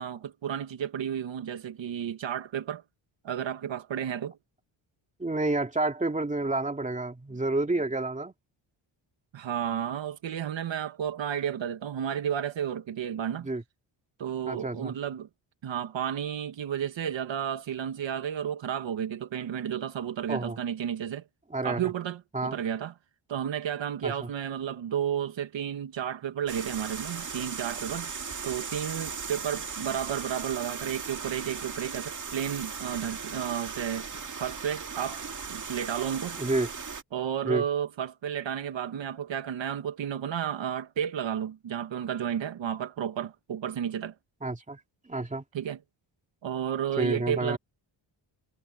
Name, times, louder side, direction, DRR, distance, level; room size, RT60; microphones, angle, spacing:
voice 1, 0.0-2.8 3.2-4.4 9.3-13.5 14.2-15.3 15.6-21.2 21.6-22.9 23.3-28.2 28.4-34.1 34.4-35.2 35.5-36.4 37.1-44.1 45.5-45.8 46.4-47.6, right 9 dB, 65° right, 1.6 m, -32 dB
voice 2, 5.2-8.3 13.4-13.6 14.5-14.9 20.3-20.6 21.5-21.9 22.3-22.6 24.0-24.3 36.4-36.7 37.4-37.6 44.4-44.8 45.1-45.4 47.0-47.6, right 2 dB, 15° right, 2.5 m, -29 dB
sound 1, 26.5-37.0, right 5 dB, 40° right, 2.2 m, -37 dB
cardioid pair, 100°, 47 cm